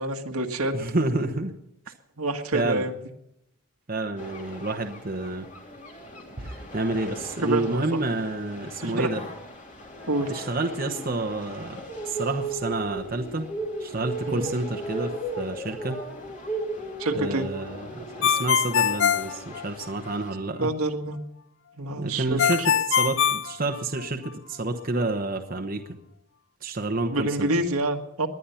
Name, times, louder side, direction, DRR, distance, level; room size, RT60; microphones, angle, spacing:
voice 1, 0.0-1.1 2.2-3.0 7.4-7.8 8.8-9.1 10.1-10.3 14.3-14.5 17.0-17.5 20.6-21.2 21.8-22.7 27.1-28.3, right 2 dB, 80° right, 4 dB, 1.7 m, -27 dB
voice 2, 0.7-1.5 1.9-2.0 2.5-2.9 3.9-5.5 6.4-9.2 10.3-13.5 13.8-16.0 17.1-20.7 22.0-26.0 26.6-27.5, right 2 dB, 40° right, 4 dB, 1.1 m, -29 dB
sound 1, 4.2-20.3, right 2 dB, 35° left, 2.9 m, -37 dB
Ringtone, 18.2-20.1 22.4-24.3, left 8 dB, 55° left, 0.5 m, -23 dB
20.5 x 10.5 x 5.8 m, 0.80 s
head